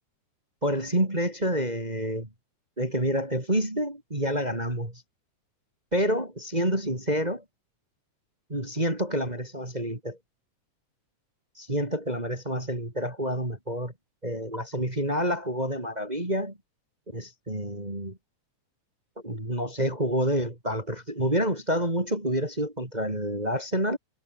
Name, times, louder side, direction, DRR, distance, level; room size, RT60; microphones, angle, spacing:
voice 1, 0.6-2.3 2.8-5.0 5.9-7.4 8.5-10.2 11.6-13.9 14.2-16.6 17.1-18.2 19.2-24.0, equal, 15° right, 3.9 m, -28 dB
omnidirectional pair, 3.5 m